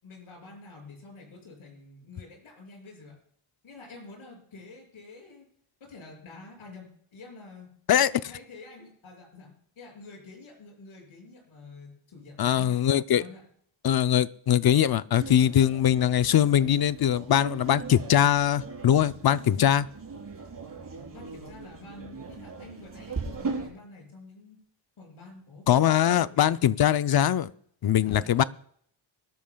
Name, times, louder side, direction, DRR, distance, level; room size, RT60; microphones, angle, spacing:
voice 1, 0.0-3.2 3.6-5.5 5.8-7.7 8.1-12.8 13.1-13.4 21.1-24.6 25.0-26.6 28.1-28.5, left 3 dB, 75° left, 0 dB, 6.3 m, -48 dB
voice 2, 12.4-13.2 13.8-19.9 25.7-27.5 27.8-28.4, left 10 dB, 50° left, 14 dB, 0.6 m, -22 dB
sound 1, 15.2-23.7, right 4 dB, 40° right, 4.6 m, -39 dB
24.5 x 12.5 x 2.3 m, 0.65 s
wide cardioid pair, 110°, 49 cm